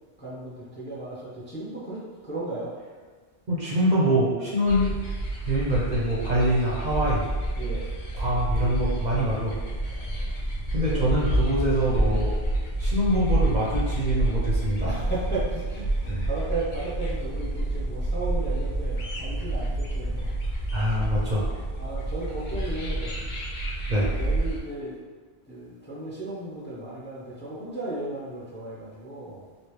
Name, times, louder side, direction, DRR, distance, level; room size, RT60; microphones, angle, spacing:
voice 1, 0.2-2.7 7.6-7.9 9.9-10.3 10.8-11.4 12.1-12.3 14.8-20.3 21.8-23.2 23.9-25.0 25.5-29.5, right 2 dB, 10° left, -7 dB, 0.6 m, -35 dB
voice 2, 3.5-5.0 5.4-7.3 8.1-9.5 10.7-12.4 12.8-14.9 16.1-16.3 20.7-21.6 23.9-24.1, equal, 50° right, -6 dB, 0.7 m, -25 dB
sound 1, 4.7-24.6, right 1 dB, 55° left, 0.7 m, -28 dB
3.1 x 2.8 x 3.1 m, 1.4 s
omnidirectional pair, 1.1 m